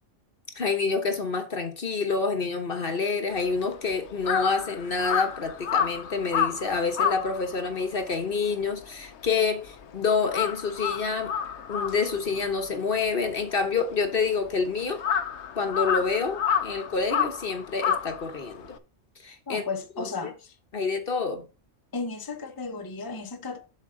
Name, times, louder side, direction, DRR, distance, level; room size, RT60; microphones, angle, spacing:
voice 1, 0.5-11.3 11.7-15.0 15.6-18.7 19.2-19.7 20.0-20.1 20.7-21.5, left 4 dB, 50° left, 1.2 m, -27 dB
Crow, 3.3-9.9 10.2-18.8, left 8 dB, 65° left, 1.0 m, -30 dB
voice 2, 19.5-20.5 21.9-23.6, left 4 dB, 20° left, 0.9 m, -34 dB
7.6 x 6.2 x 3.8 m
omnidirectional pair, 1.3 m